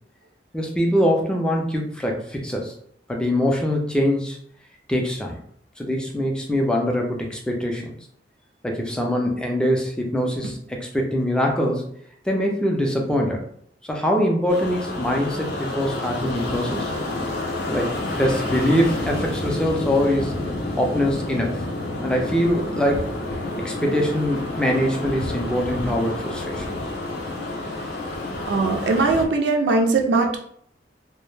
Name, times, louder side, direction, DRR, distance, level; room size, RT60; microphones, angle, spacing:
voice 1, 0.5-2.7 3.1-4.4 4.9-5.4 5.8-7.9 8.6-11.9 12.3-13.4 13.8-16.9 17.7-20.3 20.8-21.6 22.0-23.1 23.6-26.8, equal, 5° left, 0 dB, 0.4 m, -23 dB
sound 1, 14.5-29.3, left 2 dB, 65° left, 0.5 m, -29 dB
voice 2, 28.5-30.4, right 3 dB, 65° right, 3 dB, 0.3 m, -20 dB
2.2 x 2.0 x 3.1 m, 0.64 s
head